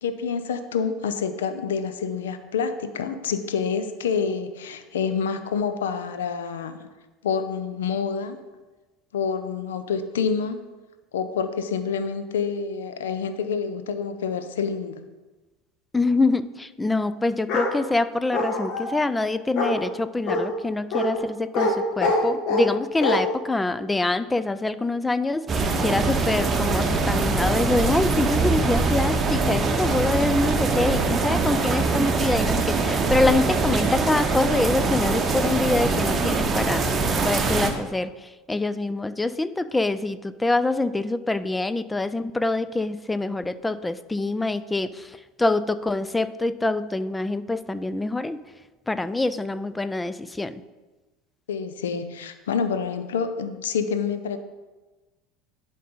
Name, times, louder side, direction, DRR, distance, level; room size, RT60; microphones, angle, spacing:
voice 1, 0.0-6.9 7.2-8.4 9.1-10.7 11.1-15.0 51.5-54.4, left 6 dB, 70° left, 10 dB, 0.5 m, -27 dB
voice 2, 15.9-36.9 37.2-48.4 48.9-50.6, left 2 dB, 10° left, 14 dB, 0.4 m, -25 dB
Bark, 17.5-17.7 18.3-18.9 19.6-19.8 20.3-20.4 20.9-21.1 21.5-21.7 22.0-22.7 23.0-23.2, left 2 dB, 50° left, 1.2 m, -23 dB
sound 1, 25.5-37.7, right 4 dB, 25° right, 0.8 m, -23 dB
11.0 x 4.1 x 3.8 m, 1.2 s
figure-of-eight pair, 70°, 0 cm